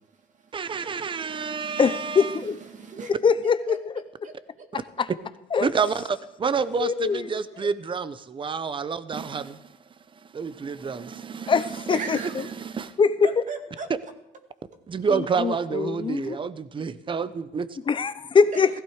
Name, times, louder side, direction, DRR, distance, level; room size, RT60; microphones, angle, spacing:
voice 1, 0.5-2.4 5.6-9.7 10.2-13.0 13.9-14.0 14.9-17.7, right 5 dB, 30° right, 15 dB, 0.9 m, -29 dB
voice 2, 1.1-1.8 2.7-3.1 3.7-3.8 4.2-4.7 11.9-12.5 13.2-13.9 16.8-16.9 18.5-18.6, right 4 dB, 45° right, 6 dB, 2.1 m, -37 dB
voice 3, 1.8-2.6 3.2-4.3 5.0-5.1 5.5-5.7 6.8-7.4 11.5-12.5 13.0-13.4 15.1-16.4 17.9-18.8, left 5 dB, 30° left, 13 dB, 0.8 m, -23 dB
16.0 x 15.0 x 5.0 m, 0.93 s
cardioid pair, 110°, 17 cm